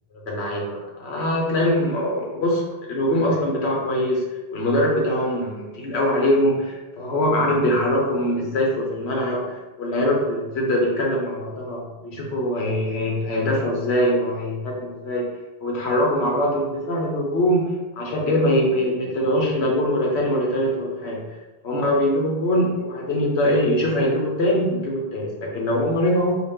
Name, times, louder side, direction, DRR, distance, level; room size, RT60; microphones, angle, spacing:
voice 1, 0.2-4.2 4.5-15.2 15.6-21.2 21.6-26.3, left 1 dB, 85° left, -2 dB, 1.2 m, -22 dB
4.0 x 2.5 x 3.5 m, 1.1 s
omnidirectional pair, 1.1 m